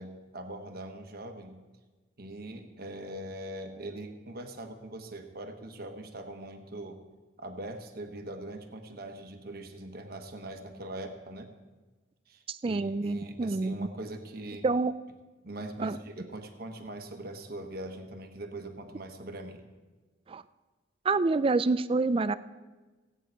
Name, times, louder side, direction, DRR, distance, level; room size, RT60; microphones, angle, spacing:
voice 1, 0.0-1.6 2.2-7.0 7.4-11.5 12.3-14.6 15.4-19.7, right 1 dB, 55° right, 6 dB, 1.2 m, -41 dB
voice 2, 12.5-13.9 14.6-14.9 15.8-16.0 20.3-20.4 21.0-22.4, right 3 dB, 30° right, 15 dB, 0.3 m, -27 dB
17.0 x 9.1 x 4.5 m, 1.3 s
head